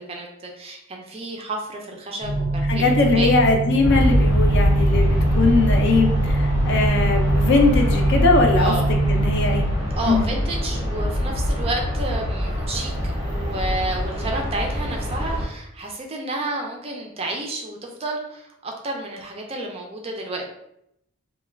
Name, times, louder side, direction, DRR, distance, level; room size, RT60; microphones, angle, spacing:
voice 1, 0.0-3.3 8.6-8.8 10.0-20.4, right 2 dB, 25° right, 1 dB, 0.3 m, -30 dB
sound 1, 2.2-9.6, right 2 dB, 10° left, 0.6 m, -23 dB
voice 2, 2.7-9.7 10.1-10.3, left 3 dB, 50° left, 3 dB, 0.4 m, -20 dB
Aircraft, 3.8-15.5, equal, 85° left, 0.9 m, -23 dB
2.3 x 2.1 x 3.2 m, 0.79 s
head